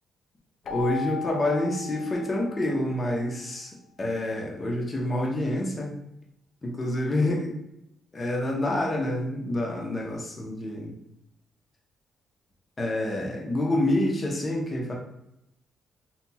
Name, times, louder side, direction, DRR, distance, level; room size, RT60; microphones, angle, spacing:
Keyboard (musical), 0.6-3.3, left 7 dB, 60° left, 0.4 m, -37 dB
voice 1, 0.7-3.7 4.0-5.9 6.6-7.5 8.1-10.9 12.8-14.9, left 1 dB, 30° left, -1 dB, 0.8 m, -27 dB
2.9 x 2.8 x 2.3 m, 0.85 s
cardioid pair, 90°, 0 cm